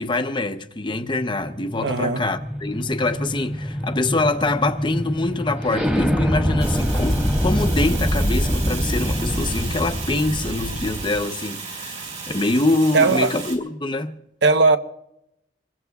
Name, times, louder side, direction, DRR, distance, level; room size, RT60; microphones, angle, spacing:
voice 1, 0.0-14.2, left 2 dB, 25° left, 0.7 m, -24 dB
sound 1, 1.0-11.2, equal, 10° right, 1.6 m, -25 dB
voice 2, 1.8-2.2 12.9-13.3 14.4-14.8, right 3 dB, 70° right, 0.9 m, -17 dB
Fire, 6.6-13.6, right 4 dB, 40° right, 4.7 m, -34 dB
26.0 x 21.0 x 2.3 m
head